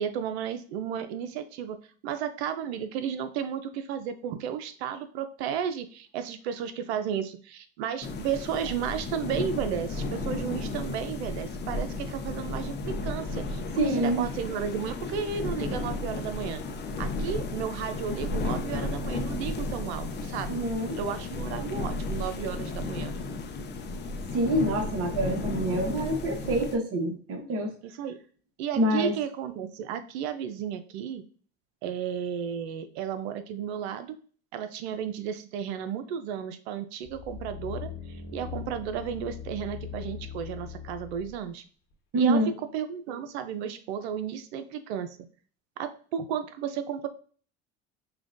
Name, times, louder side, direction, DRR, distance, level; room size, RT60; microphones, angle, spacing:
voice 1, 0.0-1.8 2.0-16.6 17.0-20.6 20.9-23.2 27.8-28.2 28.6-31.2 31.8-34.2 34.5-41.6 42.1-42.4 42.7-45.2 45.8-47.1, right 8 dB, 80° right, 11 dB, 0.6 m, -33 dB
swirling winter wind gusty grains sand, 8.0-26.8, left 3 dB, 35° left, 0.7 m, -34 dB
voice 2, 13.8-14.3 20.5-21.0 24.3-27.7 28.8-29.1 42.1-42.5, right 1 dB, 45° right, 4 dB, 1.1 m, -26 dB
sound 1, 37.1-41.4 41.9-42.0, left 7 dB, 60° left, 1.2 m, -40 dB
5.7 x 2.3 x 2.5 m, 0.42 s
supercardioid pair, 90°, 32 cm